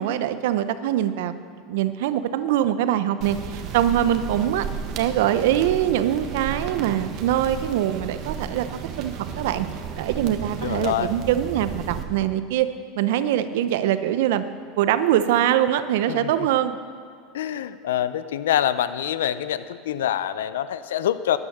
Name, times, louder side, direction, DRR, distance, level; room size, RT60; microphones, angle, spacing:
voice 1, 0.0-1.3 1.7-4.7 5.0-8.7 9.0-9.7 10.0-12.7 13.0-14.4 14.8-16.8, right 11 dB, 75° right, 12 dB, 0.7 m, -23 dB
sound 1, 3.2-12.0, right 7 dB, 55° right, 1.5 m, -33 dB
voice 2, 10.6-11.1 16.1-16.3 17.3-21.4, left 11 dB, 85° left, 14 dB, 0.5 m, -25 dB
12.5 x 9.8 x 6.7 m, 2.2 s
hypercardioid pair, 95°, 0 cm